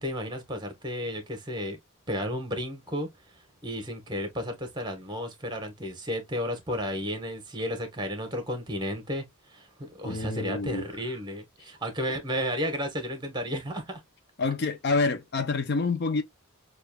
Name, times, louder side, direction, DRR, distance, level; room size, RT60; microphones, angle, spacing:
voice 1, 0.0-1.8 2.1-3.1 3.6-14.0, equal, 20° right, 1.1 m, -33 dB
voice 2, 10.0-10.9 14.4-16.2, left 3 dB, 50° left, 0.5 m, -27 dB
6.4 x 2.4 x 2.2 m
head